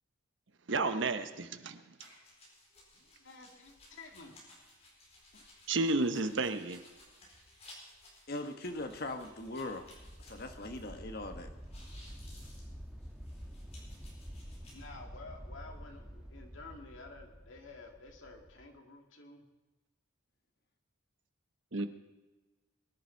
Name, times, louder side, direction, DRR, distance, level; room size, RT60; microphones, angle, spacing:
voice 1, 0.7-1.8 5.7-6.8 21.7-21.9, right 3 dB, 60° right, 9 dB, 0.9 m, -31 dB
sound 1, 2.0-11.3 11.5-14.8, left 1 dB, 30° left, 4.6 m, -58 dB
voice 2, 2.9-4.5 14.7-19.4, left 3 dB, 65° left, 2 dB, 2.3 m, -51 dB
voice 3, 8.3-9.9 10.2-11.5, left 2 dB, 45° left, 6 dB, 1.3 m, -40 dB
sound 2, 8.7-18.7, equal, 5° right, 1.4 m, -49 dB
22.0 x 11.0 x 4.5 m, 1.2 s
head